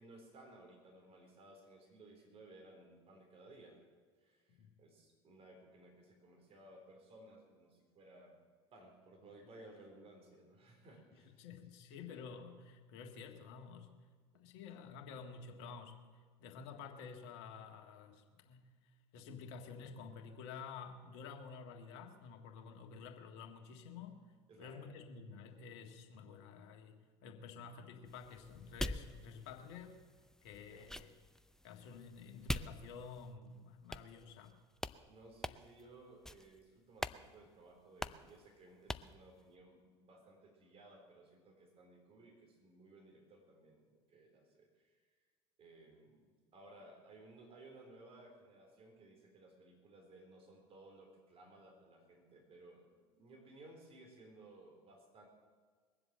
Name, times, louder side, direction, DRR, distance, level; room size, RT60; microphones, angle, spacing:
voice 1, 0.0-3.8 4.2-8.4 8.7-11.4 11.8-12.3 14.3-14.4 24.5-24.9 30.7-30.9 35.1-45.0 45.6-55.3, right 2 dB, 40° right, 2 dB, 4.0 m, -59 dB
voice 2, 11.1-13.9 14.3-16.0 16.4-18.7 19.1-24.2 24.6-30.0 30.4-31.1 31.6-34.6, left 5 dB, 65° left, 4 dB, 1.7 m, -51 dB
sound 1, 28.1-33.4 33.9-34.5 34.8-35.0 35.4-35.8 36.2-36.6 37.0-37.2 37.5-37.6 38.0-38.3 38.9-39.2, left 1 dB, 5° left, 0.6 m, -44 dB
21.5 x 7.8 x 7.5 m, 1.6 s
hypercardioid pair, 70°, 15 cm